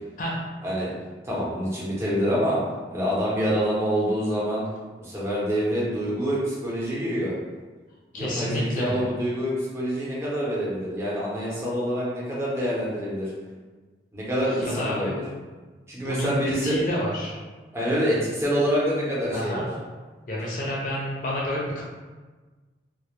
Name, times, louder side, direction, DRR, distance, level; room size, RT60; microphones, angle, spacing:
voice 1, 1.2-2.6 2.9-4.6 5.0-7.3 8.1-13.3 14.1-15.2 15.9-16.8 17.7-19.7, equal, 15° right, -7 dB, 0.6 m, -26 dB
voice 2, 8.1-9.0 14.6-15.2 16.0-17.4 19.3-19.7 20.3-21.8, left 1 dB, 45° left, -4 dB, 0.4 m, -29 dB
2.1 x 2.0 x 2.9 m, 1.3 s
head